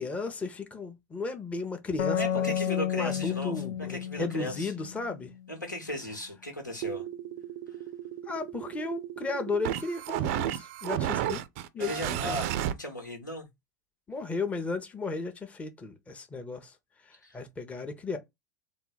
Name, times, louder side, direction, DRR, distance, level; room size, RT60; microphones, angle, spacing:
voice 1, 0.0-5.3 8.3-11.4 11.7-12.4 14.1-16.7 17.0-18.2, left 3 dB, 15° left, 0.7 m, -35 dB
sound 1, 2.0-5.5, left 10 dB, 55° left, 0.5 m, -32 dB
voice 2, 2.1-3.5 3.9-4.7 5.5-7.0 11.8-13.5 17.2-17.4, left 1 dB, 85° left, 1.3 m, -36 dB
sound 2, 6.8-12.7, right 11 dB, 50° right, 0.4 m, -33 dB
3.8 x 2.2 x 3.9 m
figure-of-eight pair, 80°, 10 cm